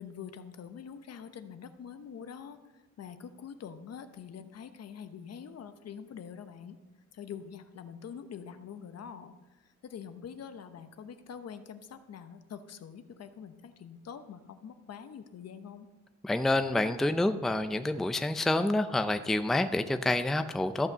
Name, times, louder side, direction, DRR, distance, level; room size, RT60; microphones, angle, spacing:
voice 1, 0.0-2.6 3.0-6.8 7.1-9.3 9.6-15.9, left 7 dB, 55° left, 9 dB, 1.0 m, -45 dB
voice 2, 16.2-20.9, left 2 dB, ahead, 9 dB, 0.5 m, -28 dB
13.5 x 5.8 x 6.7 m, 1.2 s
cardioid pair, 90°, 30 cm